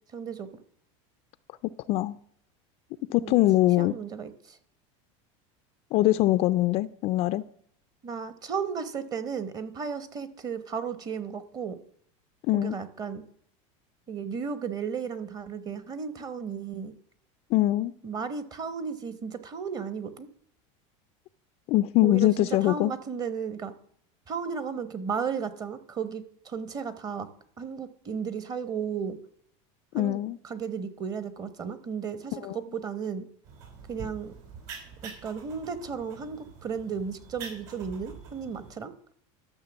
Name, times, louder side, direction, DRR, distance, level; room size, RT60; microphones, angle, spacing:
voice 1, 0.1-0.5 3.2-3.4 3.8-4.6 8.0-11.8 12.5-13.2 14.1-16.9 18.0-20.3 22.0-23.7 24.3-27.3 27.6-29.2 29.9-30.2 30.4-33.3 33.9-34.3 35.0-38.9, right 6 dB, 25° right, 0.9 m, -34 dB
voice 2, 1.6-2.2 3.1-3.9 5.9-7.4 12.5-12.7 17.5-17.9 21.7-22.9 29.9-30.4 32.4-32.6, left 16 dB, 40° left, 0.4 m, -23 dB
sound 1, 33.4-38.7, right 5 dB, 65° right, 5.2 m, -45 dB
12.5 x 6.6 x 7.0 m
supercardioid pair, 160°, 16 cm